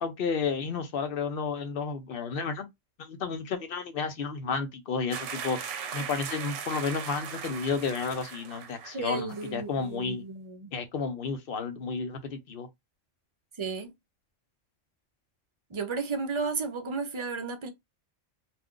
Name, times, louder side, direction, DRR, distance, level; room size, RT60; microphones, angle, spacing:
voice 1, 0.0-2.7 3.0-5.6 5.9-10.2 10.7-12.7, left 5 dB, 55° left, 0.7 m, -32 dB
sound 1, 5.1-9.0 9.3-9.5, right 7 dB, 80° right, 0.9 m, -39 dB
voice 2, 8.9-10.7 13.6-13.9 15.7-17.7, right 4 dB, 40° right, 0.4 m, -33 dB
2.4 x 2.2 x 3.6 m
omnidirectional pair, 1.3 m